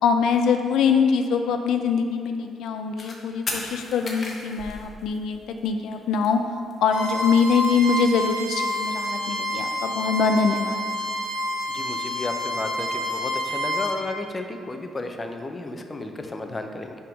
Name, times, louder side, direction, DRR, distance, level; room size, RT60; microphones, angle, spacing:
voice 1, 0.0-6.4 6.8-10.9, left 6 dB, 80° left, 6 dB, 0.3 m, -23 dB
sound 1, 3.0-3.2 3.5-5.6 5.9-6.0 6.2-6.3 6.5-7.1 7.3-8.5 8.9-10.4, left 2 dB, 40° left, 0.9 m, -35 dB
Bowed string instrument, 6.9-14.0, equal, 85° right, 0.8 m, -28 dB
voice 2, 11.7-17.0, left 2 dB, 25° left, 5 dB, 0.5 m, -33 dB
5.5 x 3.6 x 5.2 m, 2.2 s
cardioid pair, 90°, 0 cm